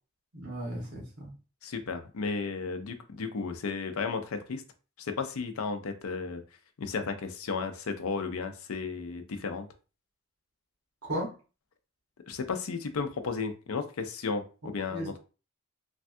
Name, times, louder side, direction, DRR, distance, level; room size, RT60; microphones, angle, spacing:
voice 1, 0.3-1.3 11.0-11.3 14.6-15.1, right 1 dB, 80° right, -2 dB, 1.3 m, -36 dB
voice 2, 1.6-4.6 5.0-6.4 6.8-9.7 12.3-15.2, left 4 dB, 70° left, 7 dB, 0.5 m, -34 dB
3.3 x 2.3 x 2.6 m, 0.34 s
head